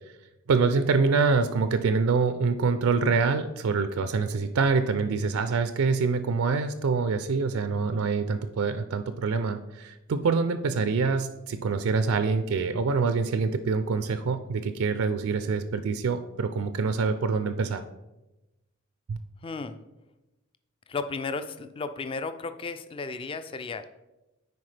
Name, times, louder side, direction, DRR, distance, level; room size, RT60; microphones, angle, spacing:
voice 1, 0.5-17.8 19.1-19.2, right 4 dB, 80° right, 10 dB, 0.4 m, -25 dB
voice 2, 19.4-19.8 20.9-23.9, left 4 dB, 25° left, 10 dB, 0.3 m, -34 dB
9.5 x 4.4 x 3.3 m, 0.99 s
head